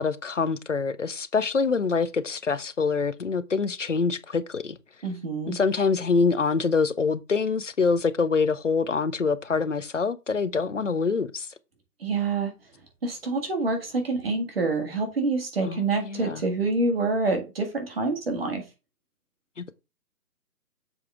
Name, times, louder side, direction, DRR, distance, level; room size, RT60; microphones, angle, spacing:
voice 1, 0.0-4.8 5.5-11.5 15.6-16.4 19.6-19.7, left 4 dB, 50° left, 0.5 m, -25 dB
voice 2, 5.0-5.6 12.0-12.5 13.0-18.6, right 3 dB, 35° right, 1.7 m, -27 dB
6.9 x 4.6 x 3.6 m
hypercardioid pair, 170°, 49 cm